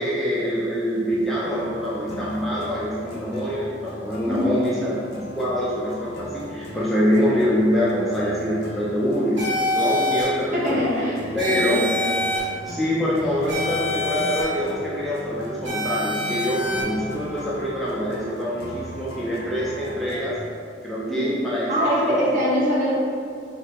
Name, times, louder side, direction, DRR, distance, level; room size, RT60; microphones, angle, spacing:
voice 1, 0.0-10.8 11.3-11.8 12.6-20.4 20.8-22.2, equal, ahead, -8 dB, 0.3 m, -25 dB
sound 1, 1.4-20.3, equal, 55° left, 0.5 m, -39 dB
sound 2, 9.4-10.2 11.4-12.4 13.5-14.4 15.6-16.8, left 2 dB, 65° right, 1.0 m, -25 dB
voice 2, 10.5-11.8 21.1-21.3 21.7-22.9, equal, 40° right, -7 dB, 0.8 m, -23 dB
2.7 x 2.7 x 3.3 m, 2.4 s
head